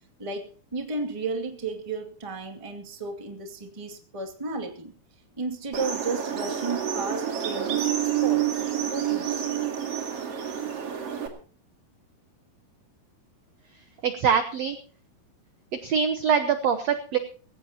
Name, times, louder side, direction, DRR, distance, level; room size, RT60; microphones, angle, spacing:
voice 1, 0.2-5.0 5.4-7.9 8.2-9.5, right 3 dB, 15° right, 1.2 m, -33 dB
sound 1, 5.7-11.3, right 9 dB, 45° right, 2.9 m, -28 dB
voice 2, 14.0-14.8 15.8-17.2, right 7 dB, 70° right, 1.6 m, -23 dB
20.5 x 17.0 x 2.9 m
omnidirectional pair, 4.5 m